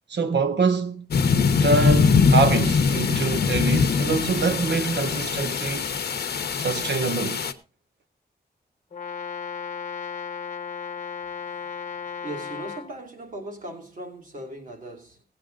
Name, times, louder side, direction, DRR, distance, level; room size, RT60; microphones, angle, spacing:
voice 1, 0.1-1.1 1.6-5.9 6.5-7.4, right 4 dB, 90° right, 1.3 m, -25 dB
sound 1, 1.1-7.5, left 5 dB, 65° left, 0.9 m, -22 dB
Brass instrument, 8.9-12.9, left 6 dB, 45° left, 1.2 m, -35 dB
voice 2, 11.3-11.7 12.2-15.2, right 1 dB, 50° right, 2.6 m, -39 dB
17.5 x 8.1 x 3.8 m
wide cardioid pair, 170°, 17 cm